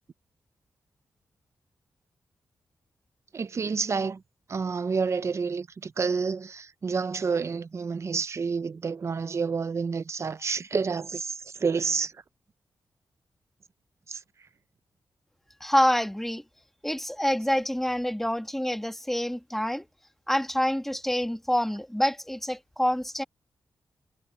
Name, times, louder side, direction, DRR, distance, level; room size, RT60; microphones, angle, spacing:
voice 1, 3.3-4.2 4.5-12.1 14.1-14.2, right 5 dB, 45° right, 0.8 m, -29 dB
voice 2, 15.6-16.4 16.8-19.8 20.3-23.2, equal, 5° left, 1.7 m, -27 dB
wide cardioid pair, 110°, 7 cm